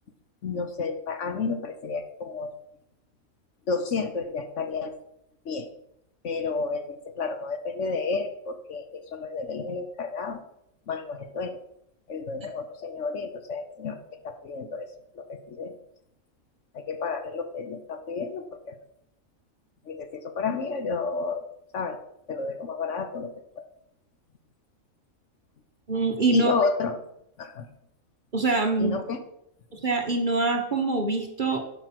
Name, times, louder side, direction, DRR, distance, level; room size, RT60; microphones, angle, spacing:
voice 1, 0.4-2.5 3.7-5.0 5.4-5.7 6.2-10.4 10.9-11.6 12.1-14.0 14.2-14.9 15.1-15.7 16.7-18.8 19.9-21.4 21.7-22.0 22.3-23.6 26.3-27.0 27.4-27.7 28.8-29.2, left 4 dB, 60° left, 8 dB, 1.2 m, -31 dB
voice 2, 25.9-26.5 28.3-29.0 29.7-31.6, right 3 dB, 40° right, 4 dB, 1.2 m, -24 dB
11.0 x 5.3 x 5.9 m, 0.77 s
omnidirectional pair, 1.5 m